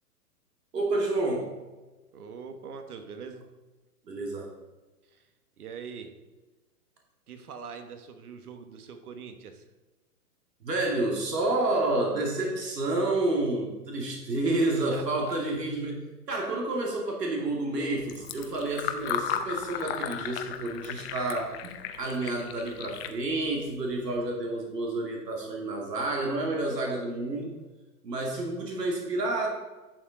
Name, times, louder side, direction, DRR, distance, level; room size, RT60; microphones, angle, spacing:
voice 1, 0.7-1.5 4.1-4.5 10.6-27.6 28.0-29.5, right 2 dB, 85° right, 0 dB, 2.3 m, -29 dB
voice 2, 2.1-3.4 5.1-5.3 5.6-6.1 7.3-9.7 14.4-14.6 14.9-15.3, right 6 dB, 65° right, 7 dB, 1.5 m, -43 dB
Fill (with liquid), 18.0-24.2, left 9 dB, 40° left, 0.8 m, -36 dB
11.0 x 6.4 x 3.8 m, 1.2 s
hypercardioid pair, 130°, 47 cm